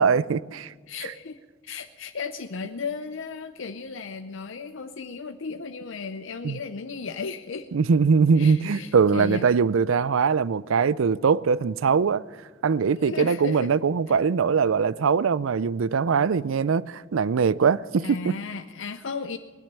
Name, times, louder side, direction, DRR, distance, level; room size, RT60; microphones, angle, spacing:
voice 1, 0.0-0.7 6.4-6.6 7.7-12.2 12.6-18.3, right 5 dB, 70° right, 0.4 m, -22 dB
voice 2, 0.9-7.7 8.4-9.5 12.9-13.7 18.0-19.4, left 4 dB, 60° left, 0.6 m, -35 dB
20.0 x 10.0 x 6.8 m
head